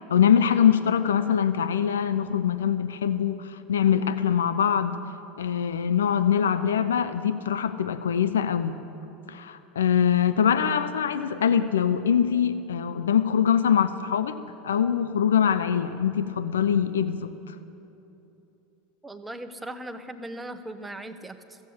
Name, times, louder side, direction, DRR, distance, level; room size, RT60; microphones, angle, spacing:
voice 1, 0.1-5.0 5.4-8.8 9.3-14.4 14.6-17.5, left 8 dB, 85° left, 11 dB, 0.5 m, -23 dB
voice 2, 19.0-21.6, right 1 dB, 10° right, 8 dB, 0.9 m, -38 dB
14.5 x 7.6 x 8.6 m, 2.9 s
hypercardioid pair, 90°, 0 cm